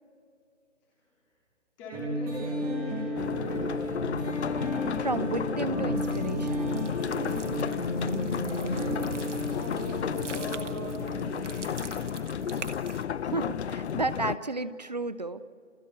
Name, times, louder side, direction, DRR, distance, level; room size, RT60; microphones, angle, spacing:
voice 1, 1.8-3.9 8.5-12.5, left 2 dB, 10° left, -7 dB, 4.8 m, -41 dB
sound 1, 1.9-12.5, equal, 10° right, 3.1 m, -33 dB
sound 2, 3.2-14.4, left 8 dB, 65° left, 0.5 m, -33 dB
voice 2, 5.0-7.2 13.2-15.4, right 3 dB, 35° right, 14 dB, 0.5 m, -33 dB
sound 3, 6.0-13.0, right 5 dB, 70° right, 1.7 m, -46 dB
30.0 x 29.0 x 4.5 m, 2.4 s
hypercardioid pair, 175°, 37 cm